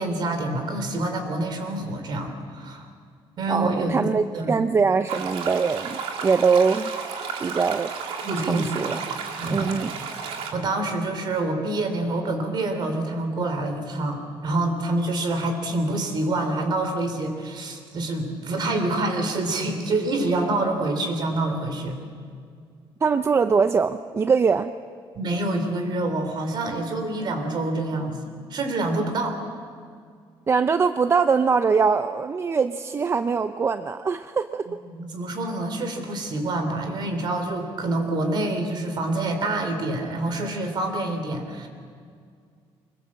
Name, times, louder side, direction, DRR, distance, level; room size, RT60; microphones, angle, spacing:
voice 1, 0.0-2.9 3.4-4.5 8.2-8.7 9.4-9.7 10.5-22.0 25.2-29.4 34.9-41.7, right 2 dB, 50° right, 6 dB, 3.6 m, -27 dB
voice 2, 3.5-6.9 7.4-7.9 8.5-9.0 9.5-9.9 23.0-24.7 30.5-34.7, right 5 dB, 30° right, 10 dB, 0.5 m, -22 dB
sound 1, 5.1-10.5, right 6 dB, 80° right, 2.5 m, -32 dB
25.0 x 21.0 x 7.5 m, 2.2 s
cardioid pair, 140°, 9 cm